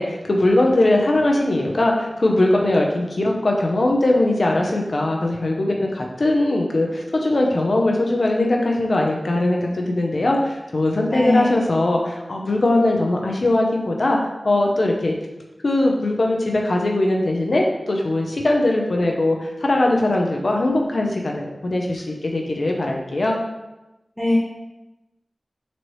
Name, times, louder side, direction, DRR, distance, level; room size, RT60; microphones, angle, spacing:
voice 1, 0.0-14.2 14.4-15.2 15.6-23.4, left 1 dB, 70° left, 0 dB, 0.6 m, -20 dB
voice 2, 11.1-11.7 24.2-24.4, left 2 dB, 10° left, -7 dB, 0.7 m, -21 dB
4.0 x 3.1 x 3.1 m, 1.0 s
wide cardioid pair, 60°, 0 cm